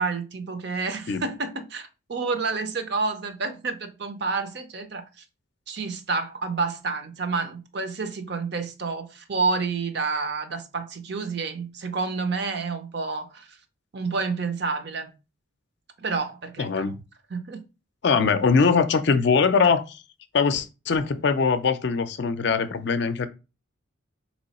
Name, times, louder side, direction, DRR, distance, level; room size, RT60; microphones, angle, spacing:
voice 1, 0.0-5.2 5.7-13.6 13.9-15.1 16.0-16.8 17.3-17.6, right 4 dB, 55° right, 0.6 m, -29 dB
voice 2, 16.6-16.9 18.0-20.0 20.3-23.3, left 5 dB, 55° left, 0.4 m, -22 dB
3.8 x 3.0 x 4.1 m
head